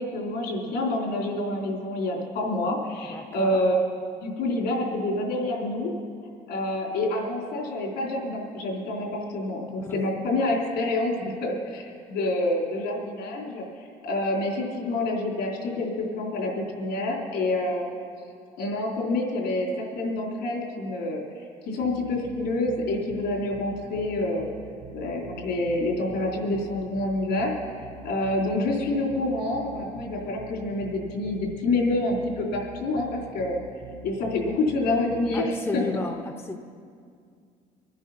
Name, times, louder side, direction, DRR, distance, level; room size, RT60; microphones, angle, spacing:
voice 1, 0.0-3.8 4.2-5.9 6.5-13.6 14.0-17.9 18.6-24.5 24.9-27.6 28.0-33.6 34.0-35.8, left 2 dB, 80° left, -1 dB, 3.7 m, -27 dB
voice 2, 3.1-3.7 9.8-10.0 35.3-36.6, left 3 dB, 15° left, 5 dB, 0.8 m, -33 dB
sound 1, 21.8-35.4, right 3 dB, 70° right, 1.6 m, -45 dB
25.0 x 9.8 x 5.7 m, 2.2 s
cardioid pair, 110°, 17 cm